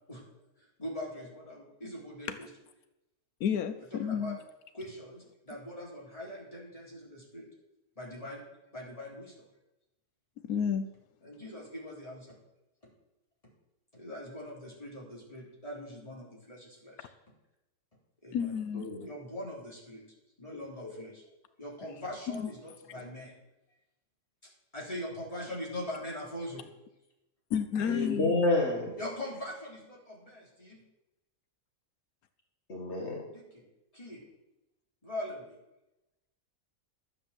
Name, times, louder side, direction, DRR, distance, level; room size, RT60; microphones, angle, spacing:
voice 1, 0.6-2.5 3.8-4.3 4.7-7.5 8.0-8.4 8.7-9.5 11.2-12.4 13.9-17.1 18.2-18.5 19.0-20.0 20.4-21.2 21.6-23.3 24.7-26.7 29.0-30.8 33.3-33.6 33.9-34.2 35.0-35.5, left 1 dB, 25° left, -3 dB, 3.9 m, -42 dB
voice 2, 3.4-4.4 10.4-10.9 18.3-18.9 22.3-22.5 27.5-28.3, left 8 dB, 90° left, 10 dB, 1.3 m, -31 dB
voice 3, 18.7-19.1 20.5-21.0 23.0-23.1 27.9-29.0 32.7-33.3, left 2 dB, 50° left, -1 dB, 2.3 m, -30 dB
12.5 x 8.3 x 7.6 m, 0.93 s
omnidirectional pair, 1.5 m